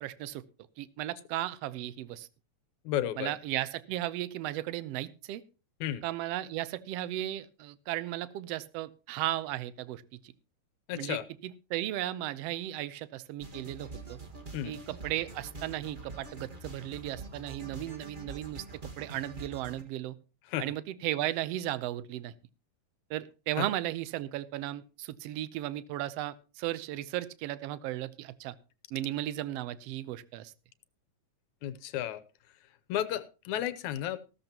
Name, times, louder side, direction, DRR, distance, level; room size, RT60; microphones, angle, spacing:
voice 1, 0.0-0.4 0.8-2.3 3.2-5.4 6.0-10.2 11.0-14.2 14.6-20.2 20.6-22.3 23.1-28.5 28.9-30.5, right 14 dB, 70° right, 16 dB, 1.6 m, -35 dB
voice 2, 2.9-3.3 5.8-6.0 10.9-11.2 14.5-14.7 20.5-20.7 23.6-23.7 31.6-32.2 32.9-34.2, left 12 dB, 85° left, 13 dB, 2.2 m, -33 dB
sound 1, 13.4-19.8, right 3 dB, 25° right, 1.2 m, -45 dB
15.0 x 13.5 x 2.9 m, 0.32 s
omnidirectional pair, 3.3 m